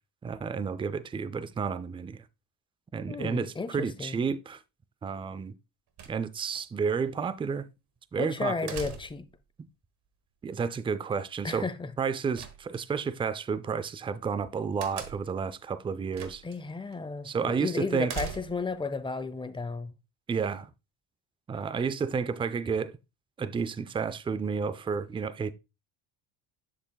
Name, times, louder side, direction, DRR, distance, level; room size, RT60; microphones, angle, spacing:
voice 1, 0.2-2.2 2.9-4.6 5.0-5.5 6.1-7.7 8.1-8.8 10.4-11.7 12.0-16.4 17.2-18.1 20.3-20.7 21.5-22.9 23.4-25.5, right 5 dB, 15° right, 0.3 m, -31 dB
voice 2, 3.1-4.2 8.2-9.2 11.4-11.9 16.4-19.9, left 4 dB, 10° left, 0.7 m, -33 dB
sound 1, 6.0-6.6 8.7-9.4 12.4-13.1 14.8-15.4 16.1-16.6 16.9-17.0 18.1-18.8, right 6 dB, 55° right, 1.4 m, -40 dB
7.8 x 6.7 x 2.3 m
supercardioid pair, 85°, 46 cm